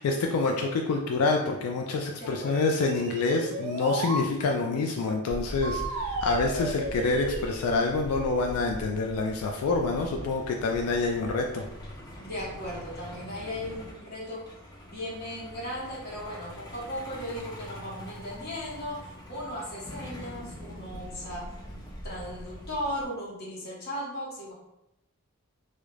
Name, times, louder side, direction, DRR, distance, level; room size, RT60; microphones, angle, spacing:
voice 1, 0.0-11.6, left 3 dB, 90° left, 2 dB, 0.3 m, -27 dB
voice 2, 2.2-2.7 12.2-14.5 14.9-24.5, equal, 45° left, -6 dB, 0.9 m, -37 dB
sound 1, 2.5-4.3 5.6-7.7, right 3 dB, 85° right, 0.4 m, -34 dB
Truck, 5.3-23.0, equal, 20° left, 0.4 m, -42 dB
2.4 x 2.0 x 3.0 m, 0.87 s
head